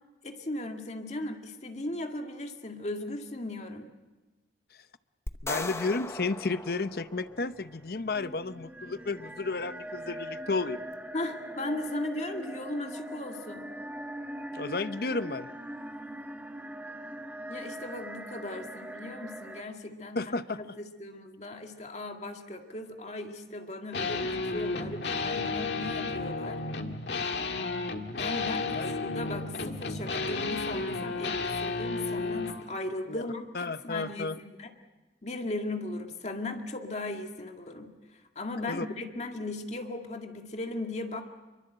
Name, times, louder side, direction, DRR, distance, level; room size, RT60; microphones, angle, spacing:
voice 1, 0.2-3.9 11.1-13.7 17.5-26.6 28.2-34.7 35.2-41.2, left 2 dB, 40° left, 4 dB, 2.0 m, -37 dB
sound 1, 5.3-7.6, left 2 dB, 15° left, 0.8 m, -38 dB
voice 2, 5.4-10.8 14.5-15.5 20.2-20.6 28.7-28.9 33.1-33.2 33.5-34.4 38.7-38.9, left 3 dB, 60° left, 13 dB, 0.8 m, -32 dB
sound 2, 7.0-19.6, right 1 dB, 10° right, 1.3 m, -42 dB
sound 3, 23.9-32.6, left 3 dB, 80° left, 1.8 m, -32 dB
26.0 x 23.5 x 7.9 m, 1.1 s
head